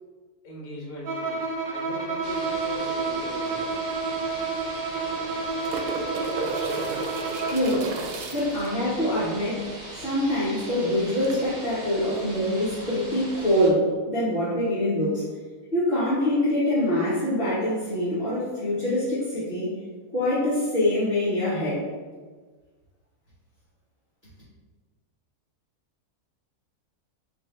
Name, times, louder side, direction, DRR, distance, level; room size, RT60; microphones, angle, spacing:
voice 1, 0.4-4.2, left 1 dB, 70° left, -3 dB, 1.3 m, -40 dB
Bowed string instrument, 1.0-7.7, right 4 dB, 65° right, 0.5 m, -30 dB
sound 1, 2.2-13.7, right 1 dB, 45° right, 1.4 m, -41 dB
sound 2, 3.5-3.6 3.8-3.9 5.0-8.7 11.2-11.3, right 3 dB, 85° right, 1.1 m, -33 dB
voice 2, 7.4-7.9 8.3-9.6 10.0-15.2 15.7-19.8 20.1-21.8, left 1 dB, 40° left, -10 dB, 1.2 m, -24 dB
5.2 x 2.6 x 3.2 m, 1.4 s
omnidirectional pair, 1.6 m